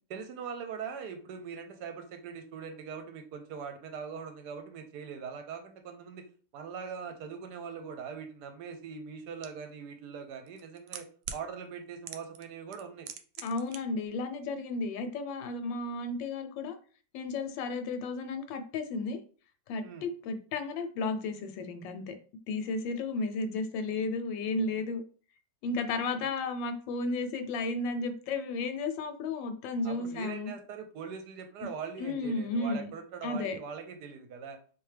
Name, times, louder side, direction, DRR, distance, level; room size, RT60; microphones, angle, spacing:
voice 1, 0.1-6.3 6.5-11.1 11.3-13.1 19.8-20.1 26.2-26.3 29.8-34.6, right 6 dB, 75° right, 6 dB, 1.1 m, -41 dB
sound 1, 9.4-9.5 10.5-11.4 12.1-12.5 12.7-13.8 14.0-14.1, right 8 dB, 90° right, 1.3 m, -40 dB
voice 2, 13.4-16.8 17.1-19.2 19.7-22.1 22.5-25.0 25.6-30.5 32.0-32.9 33.2-33.6, left 3 dB, 85° left, 8 dB, 1.3 m, -33 dB
3.7 x 2.8 x 3.2 m, 0.41 s
omnidirectional pair, 1.9 m